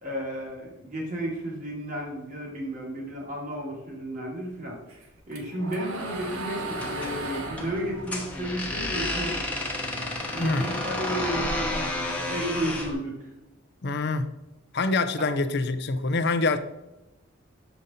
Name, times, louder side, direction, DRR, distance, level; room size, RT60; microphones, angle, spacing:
voice 1, 0.0-4.8 5.3-9.4 10.3-13.3 15.2-15.3, equal, 40° right, -3 dB, 2.3 m, -33 dB
sound 1, 4.9-9.4 9.8-11.3, right 2 dB, 85° right, 1.3 m, -37 dB
sound 2, 6.7-12.9, left 1 dB, 5° left, 1.0 m, -31 dB
voice 2, 13.8-14.2 14.7-16.6, left 3 dB, 50° left, 10 dB, 0.6 m, -25 dB
7.0 x 5.2 x 4.1 m, 0.97 s
head